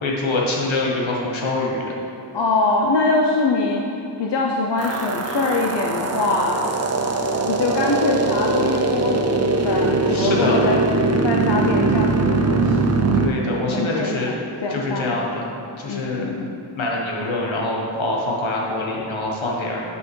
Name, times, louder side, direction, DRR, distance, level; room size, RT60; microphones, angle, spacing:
voice 1, 0.0-1.9 10.1-10.7 13.1-14.3 14.7-15.5 15.8-16.3 16.8-19.8, left 2 dB, 80° left, -3 dB, 1.2 m, -24 dB
voice 2, 2.3-3.8 4.2-6.6 7.4-10.8 11.2-13.0 13.7-14.2 14.6-15.2 15.9-16.6, left 3 dB, 60° left, -1 dB, 0.6 m, -23 dB
sound 1, 4.8-13.3, right 3 dB, 35° right, 0.5 m, -21 dB
7.8 x 5.6 x 3.1 m, 2.5 s
wide cardioid pair, 95°, 47 cm